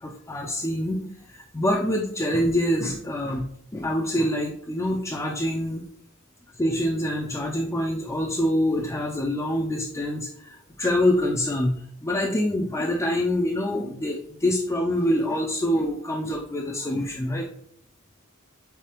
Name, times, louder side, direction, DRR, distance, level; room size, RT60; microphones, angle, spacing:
voice 1, 0.0-1.0 1.3-5.8 6.6-17.5, left 1 dB, 15° left, -1 dB, 0.4 m, -25 dB
4.7 x 3.8 x 3.0 m, 0.67 s
head